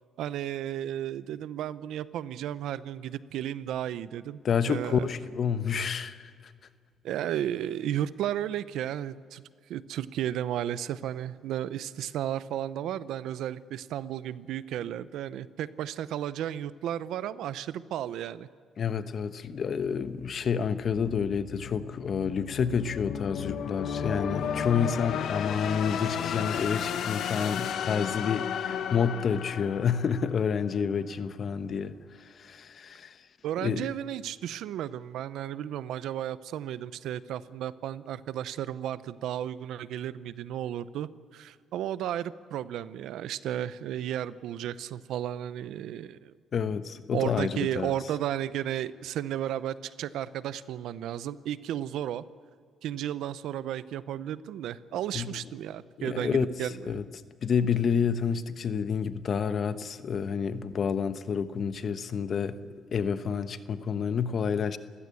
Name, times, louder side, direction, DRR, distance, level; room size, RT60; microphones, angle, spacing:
voice 1, 0.2-4.4 4.7-5.1 7.0-9.4 9.7-18.5 33.4-46.3 47.1-52.2 52.8-57.0, right 11 dB, 85° right, 16 dB, 0.7 m, -33 dB
voice 2, 4.4-6.5 18.8-33.2 33.6-33.9 46.5-47.9 55.1-55.4 56.0-56.5 56.8-57.0 57.4-62.6 62.9-64.8, left 6 dB, 55° left, 11 dB, 1.1 m, -29 dB
sound 1, 19.9-30.8, left 8 dB, 75° left, 1.3 m, -34 dB
29.0 x 16.0 x 8.4 m, 2.2 s
cardioid pair, 90°, 0 cm